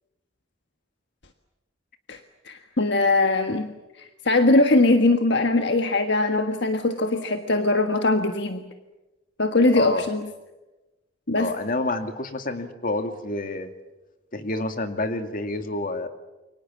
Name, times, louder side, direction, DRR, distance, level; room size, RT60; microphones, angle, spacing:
voice 1, 2.4-3.7 4.2-8.6 9.4-10.3 11.3-11.5, left 2 dB, 65° left, 6 dB, 1.5 m, -21 dB
voice 2, 9.7-10.1 11.4-13.7 14.3-16.1, left 2 dB, 45° left, 7 dB, 2.2 m, -28 dB
29.0 x 24.0 x 7.4 m, 1.1 s
head